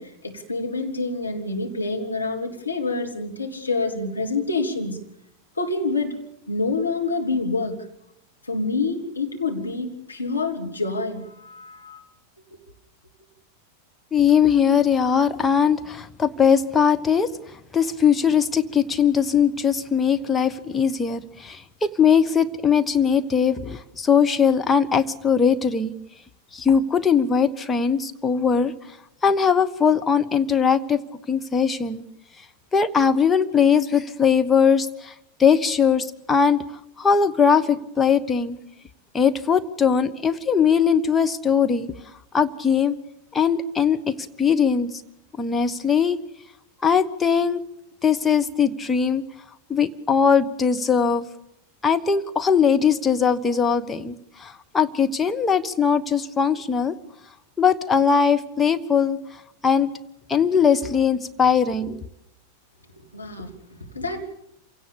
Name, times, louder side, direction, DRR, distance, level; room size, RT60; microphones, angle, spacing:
voice 1, 0.0-5.0 5.6-6.2 6.5-7.9 8.4-12.0 12.5-12.6 63.0-64.2, left 3 dB, 80° left, 2 dB, 3.0 m, -27 dB
voice 2, 14.1-17.3 17.7-25.9 26.5-28.7 29.2-31.0 31.3-32.0 32.7-35.1 35.4-36.6 37.0-38.6 39.1-41.9 42.3-43.0 43.3-44.9 45.4-46.2 46.8-47.6 48.0-49.2 49.7-51.3 51.8-56.9 57.6-59.2 59.6-59.9 60.3-62.0, left 6 dB, 15° left, 8 dB, 1.3 m, -20 dB
27.0 x 17.5 x 7.0 m, 0.77 s
figure-of-eight pair, 90°, 0 cm